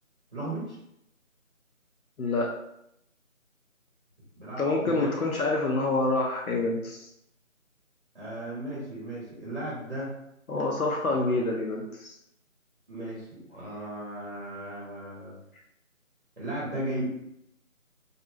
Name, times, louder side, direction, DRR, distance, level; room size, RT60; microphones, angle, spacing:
voice 1, 0.3-0.8 4.3-5.2 8.1-10.1 11.0-11.2 12.9-15.3 16.4-17.0, right 1 dB, 40° right, -6 dB, 0.8 m, -36 dB
voice 2, 2.2-2.5 4.6-7.1 10.5-12.1, left 2 dB, 85° left, -1 dB, 0.6 m, -27 dB
2.5 x 2.0 x 2.7 m, 0.80 s
figure-of-eight pair, 165°, 41 cm